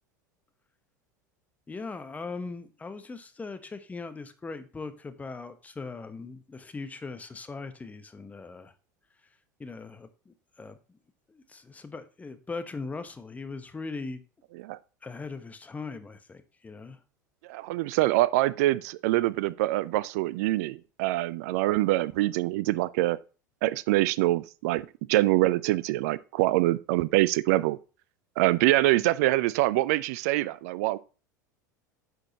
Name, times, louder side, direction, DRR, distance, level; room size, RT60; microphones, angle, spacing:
voice 1, 1.7-8.7 9.6-10.8 11.3-14.2 15.0-17.0, left 4 dB, 15° left, 0.9 m, -40 dB
voice 2, 17.5-23.2 23.6-27.8 28.4-31.0, right 17 dB, 55° right, 0.4 m, -25 dB
9.9 x 6.3 x 2.9 m
figure-of-eight pair, 75°, 10 cm